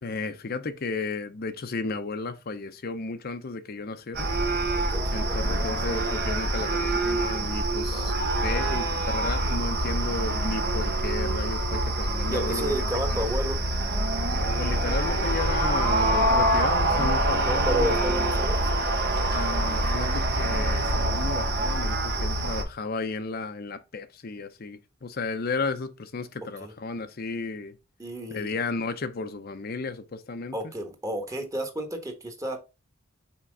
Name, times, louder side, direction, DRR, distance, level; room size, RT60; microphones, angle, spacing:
voice 1, 0.0-4.3 5.1-8.1 8.4-12.7 13.1-13.2 14.6-18.0 19.3-27.8 28.3-30.7, left 3 dB, 50° left, 0.6 m, -33 dB
sound 1, 4.1-22.6, right 1 dB, 55° right, 1.1 m, -25 dB
voice 2, 4.7-5.7 7.9-8.8 12.3-13.7 17.4-18.6 26.6-26.7 28.0-28.5 30.5-32.6, equal, 15° right, 1.2 m, -32 dB
5.8 x 4.4 x 3.8 m
head